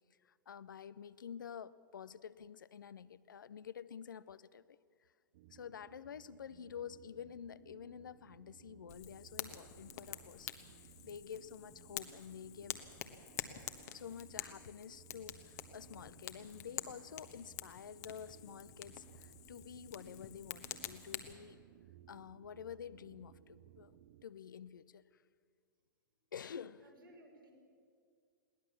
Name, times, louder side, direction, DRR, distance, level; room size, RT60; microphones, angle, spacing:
voice 1, 0.2-4.8 5.5-10.5 11.0-12.8 13.9-21.6 22.1-23.9 24.2-25.2 26.3-26.8, left 8 dB, 70° left, 16 dB, 0.7 m, -49 dB
sound 1, 5.3-24.2, right 13 dB, 50° right, 0.7 m, -61 dB
Fire, 8.9-21.3, left 12 dB, 50° left, 1.3 m, -48 dB
voice 2, 10.5-11.1 26.1-26.3 26.7-27.5, right 1 dB, 80° right, -1 dB, 5.2 m, -63 dB
21.5 x 18.0 x 7.1 m, 2.1 s
figure-of-eight pair, 100°, 11 cm